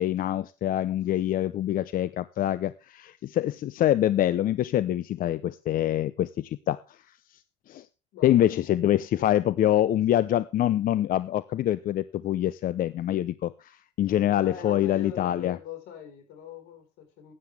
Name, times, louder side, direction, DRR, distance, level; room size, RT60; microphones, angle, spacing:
voice 1, 0.0-6.8 7.7-7.8 8.2-13.5 14.0-15.6, left 12 dB, 55° left, 16 dB, 0.6 m, -25 dB
voice 2, 8.1-8.6 14.3-17.3, left 9 dB, 90° left, 5 dB, 4.6 m, -41 dB
15.0 x 9.8 x 3.4 m, 0.31 s
cardioid pair, 110°, 17 cm